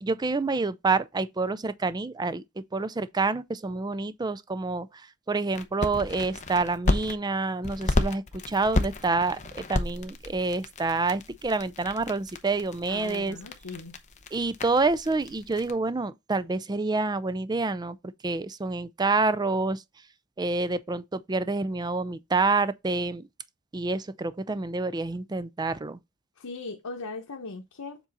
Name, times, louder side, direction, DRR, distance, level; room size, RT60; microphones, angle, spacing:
voice 1, 0.0-4.9 5.3-13.4 14.3-18.0 18.2-19.8 20.4-23.2 23.7-26.0, right 3 dB, 20° right, 0.4 m, -28 dB
sound 1, 5.5-7.1 7.6-15.7, left 2 dB, 35° left, 0.8 m, -32 dB
voice 2, 12.9-13.9 26.4-28.0, left 3 dB, 90° left, 0.9 m, -38 dB
7.3 x 3.9 x 4.0 m
head